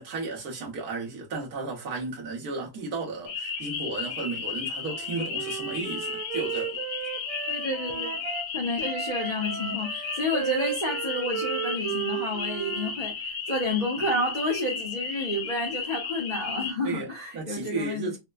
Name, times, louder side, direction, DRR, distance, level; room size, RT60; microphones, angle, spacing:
voice 1, 0.0-6.8 16.8-17.1 17.3-18.2, right 3 dB, 55° right, 1.3 m, -34 dB
sound 1, 3.3-16.7, left 5 dB, 80° left, 1.7 m, -34 dB
Wind instrument woodwind instrument, 4.9-8.5 8.8-13.0, right 10 dB, 90° right, 1.5 m, -35 dB
voice 2, 7.5-8.2 8.5-13.1 13.5-18.1, left 1 dB, 50° left, 0.5 m, -30 dB
4.3 x 2.1 x 2.3 m
omnidirectional pair, 2.4 m